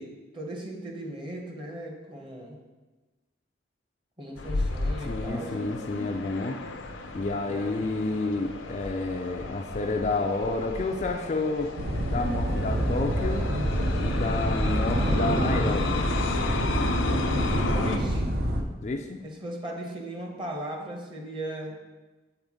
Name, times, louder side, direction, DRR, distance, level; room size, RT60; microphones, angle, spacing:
voice 1, 0.0-2.6 4.2-5.6 7.4-7.8 17.8-18.3 19.2-21.8, right 1 dB, 25° right, 0 dB, 0.9 m, -37 dB
sound 1, 4.4-18.0, left 3 dB, 85° left, 0.6 m, -33 dB
voice 2, 5.1-6.6 7.1-11.7 12.1-13.5 14.0-16.0 18.8-19.2, left 3 dB, 35° left, 4 dB, 0.3 m, -30 dB
sound 2, 11.8-18.6, equal, 50° right, 0.7 m, -27 dB
7.8 x 4.4 x 3.6 m, 1.2 s
head